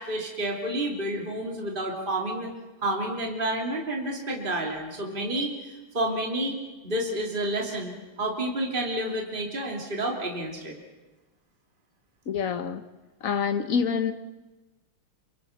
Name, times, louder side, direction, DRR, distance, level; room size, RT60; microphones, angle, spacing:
voice 1, 0.0-2.5 2.8-6.6 6.8-10.7, right 1 dB, 25° right, 0 dB, 3.2 m, -30 dB
voice 2, 12.3-12.8 13.2-14.1, left 6 dB, 45° left, 9 dB, 1.4 m, -26 dB
28.5 x 23.5 x 5.9 m, 1.1 s
omnidirectional pair, 2.4 m